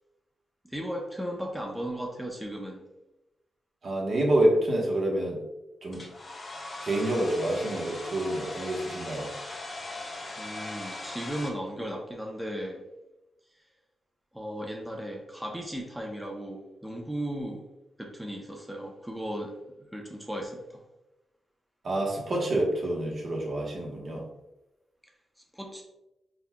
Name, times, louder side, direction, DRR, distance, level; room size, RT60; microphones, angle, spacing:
voice 1, 0.6-2.8 10.4-12.8 14.3-17.6 18.0-20.8 25.5-25.8, equal, 5° right, 0 dB, 0.7 m, -36 dB
voice 2, 3.8-5.4 5.8-6.1 6.8-9.3 21.8-24.3, right 1 dB, 55° right, -1 dB, 1.1 m, -27 dB
Domestic sounds home sounds, 5.9-11.5, left 2 dB, 35° left, 1.1 m, -39 dB
4.3 x 4.1 x 2.2 m, 0.96 s
cardioid pair, 70°, 0 cm